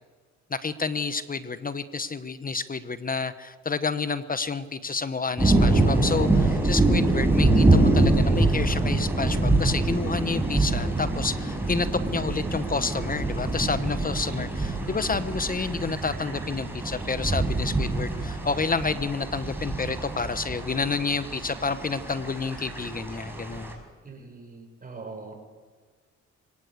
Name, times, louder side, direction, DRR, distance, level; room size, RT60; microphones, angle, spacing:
voice 1, 0.5-23.8, left 4 dB, 30° left, 13 dB, 1.1 m, -29 dB
sound 1, 5.4-23.7, right 2 dB, 5° right, 5.8 m, -25 dB
voice 2, 24.0-25.4, right 3 dB, 30° right, 2 dB, 7.1 m, -42 dB
22.5 x 18.0 x 8.1 m, 1.5 s
cardioid pair, 90°, 30 cm